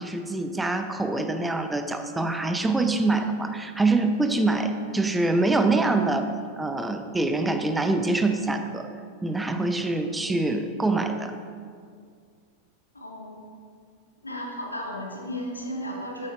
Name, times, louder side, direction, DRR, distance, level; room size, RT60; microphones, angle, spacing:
voice 1, 0.0-6.3 6.5-8.9 9.2-11.3, right 2 dB, 10° right, 7 dB, 0.6 m, -25 dB
voice 2, 12.9-13.5 14.2-16.3, equal, 80° left, -2 dB, 1.8 m, -34 dB
12.5 x 8.9 x 2.5 m, 2.1 s
figure-of-eight pair, 90°, 0 cm